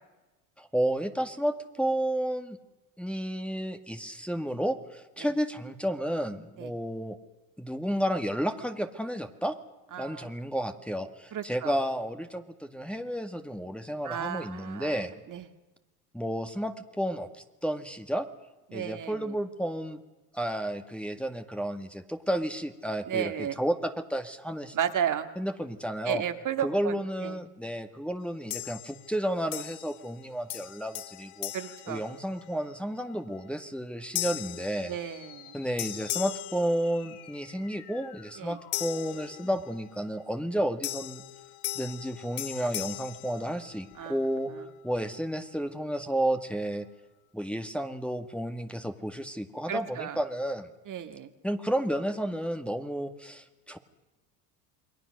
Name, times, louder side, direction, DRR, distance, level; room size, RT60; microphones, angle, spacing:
voice 1, 0.6-2.6 3.0-7.2 7.6-9.6 10.0-15.1 16.1-17.3 17.6-18.3 18.7-20.0 20.3-24.8 25.4-26.2 26.6-31.5 31.9-34.9 35.5-41.2 41.8-44.5 44.8-46.9 47.3-50.7 51.4-53.8, equal, ahead, 6 dB, 1.8 m, -32 dB
voice 2, 9.9-10.3 11.3-11.7 14.0-15.0 15.3-15.5 18.7-19.3 23.1-23.6 24.7-25.3 26.1-27.0 27.2-27.4 31.5-32.0 34.9-35.5 38.4-38.6 44.0-44.2 49.7-50.2 50.9-51.3, right 9 dB, 40° right, 7 dB, 2.1 m, -33 dB
sound 1, 28.5-29.2 29.5-30.2 30.5-32.7 33.2-33.4 34.1-35.5 35.8-37.4 38.7-39.9 40.8-44.1, left 17 dB, 50° left, 0.9 m, -38 dB
sound 2, 34.6-39.6, left 9 dB, 70° left, 3.2 m, -52 dB
28.5 x 22.0 x 6.5 m, 1.1 s
hypercardioid pair, 75°, 47 cm